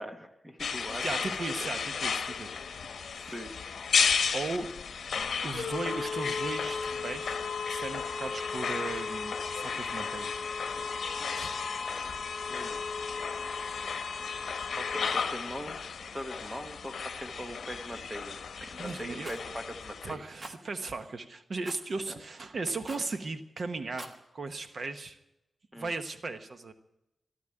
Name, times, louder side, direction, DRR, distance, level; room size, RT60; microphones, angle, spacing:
voice 1, 0.0-1.3 1.6-1.7 3.3-3.5 12.5-12.8 14.3-20.2 22.1-22.2 25.7-25.9, equal, 10° right, 6 dB, 1.1 m, -42 dB
sound 1, 0.6-20.1, left 5 dB, 70° left, 1.1 m, -33 dB
voice 2, 1.0-2.7 3.1-3.3 4.3-4.7 5.4-10.3 10.7-11.1 11.4-11.5 18.8-19.3 20.0-25.2 25.8-26.7, right 3 dB, 45° right, 8 dB, 1.0 m, -37 dB
Rattle, 19.2-19.4 20.4-20.6 21.6-21.9 22.8-23.1 23.8-24.2, right 1 dB, 30° right, 1.3 m, -44 dB
13.5 x 12.0 x 8.8 m, 0.92 s
wide cardioid pair, 175°, 0 cm